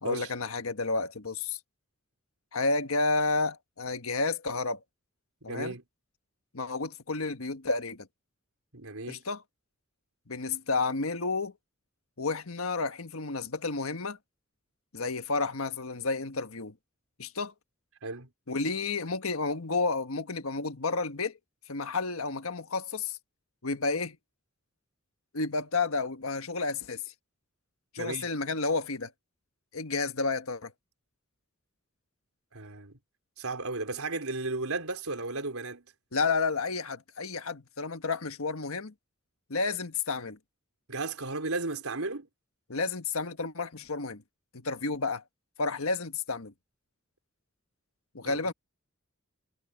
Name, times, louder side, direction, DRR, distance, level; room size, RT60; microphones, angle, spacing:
voice 1, 0.0-1.6 2.5-4.8 5.4-5.7 6.5-8.1 9.1-9.4 10.3-11.5 12.2-14.2 14.9-16.7 17.2-17.5 18.5-21.4 21.7-23.2 23.6-24.2 25.3-27.1 27.9-29.1 29.7-30.7 36.1-38.9 39.5-40.4 42.7-44.2 44.5-45.2 45.6-46.5 48.1-48.5, left 3 dB, 75° left, 1.5 m, -31 dB
voice 2, 5.5-5.8 8.7-9.2 18.0-18.3 28.0-28.3 32.5-32.9 33.4-35.8 40.9-42.3 48.3-48.4, right 3 dB, 85° right, 4.0 m, -34 dB
head